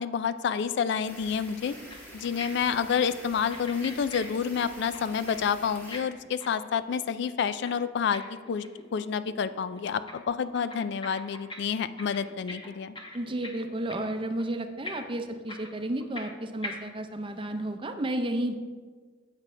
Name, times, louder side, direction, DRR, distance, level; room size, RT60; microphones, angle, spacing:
voice 1, 0.0-1.7 2.1-8.2 8.5-8.6 8.9-13.0, left 7 dB, 60° left, 14 dB, 0.3 m, -29 dB
sound 1, 1.0-6.0, equal, 10° left, 1.8 m, -47 dB
sound 2, 1.9-2.4 2.7-5.3 5.6-9.0 9.3-10.1 10.4-11.6 11.8-13.6 13.9-14.1 14.4-14.5 14.9-16.4 16.6-16.7, left 2 dB, 25° left, 1.1 m, -41 dB
voice 2, 13.1-18.5, right 1 dB, 25° right, 7 dB, 0.6 m, -32 dB
9.8 x 7.4 x 3.3 m, 1.5 s
head